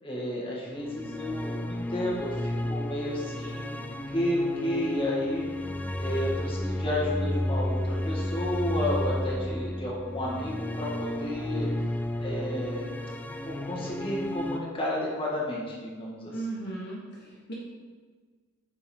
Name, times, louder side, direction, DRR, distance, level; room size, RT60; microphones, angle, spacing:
voice 1, 0.0-5.5 5.9-11.7 12.2-12.9 13.4-16.3, left 1 dB, 25° left, -5 dB, 1.7 m, -32 dB
sound 1, 0.8-14.6, left 1 dB, 10° left, 0.3 m, -32 dB
voice 2, 16.3-17.5, right 2 dB, 55° left, -4 dB, 1.3 m, -37 dB
9.7 x 4.2 x 4.3 m, 1.5 s
head